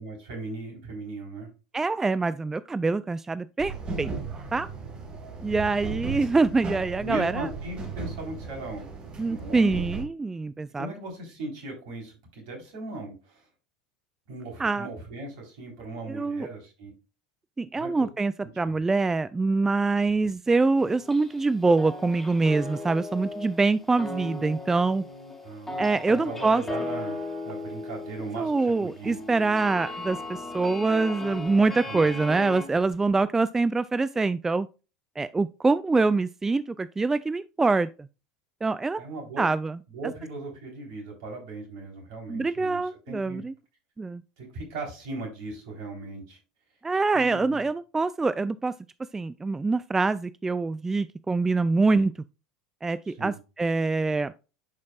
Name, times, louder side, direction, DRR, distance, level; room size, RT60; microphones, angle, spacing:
voice 1, 0.0-1.5 7.0-8.9 9.3-9.9 10.7-13.4 14.3-16.9 17.7-18.1 18.6-18.8 25.4-27.2 27.4-28.5 28.8-29.2 31.9-32.1 39.0-39.5 39.9-42.8 43.1-43.4 44.4-46.4 47.1-47.7 53.0-53.4, right 2 dB, 60° right, 3.7 m, -38 dB
voice 2, 1.7-4.1 4.5-4.7 5.4-7.5 9.2-10.9 14.6-14.9 16.1-16.5 17.6-25.0 25.8-26.6 28.4-34.7 35.2-38.1 38.6-39.0 39.4-39.8 42.3-43.5 44.0-44.2 46.8-48.7 49.1-52.1 52.8-54.3, right 3 dB, 15° right, 0.3 m, -25 dB
sound 1, 3.6-10.0, right 4 dB, 35° right, 2.3 m, -36 dB
sound 2, 20.8-21.5 21.8-32.6, left 2 dB, 10° left, 3.1 m, -37 dB
10.5 x 5.2 x 2.3 m
figure-of-eight pair, 75°, 3 cm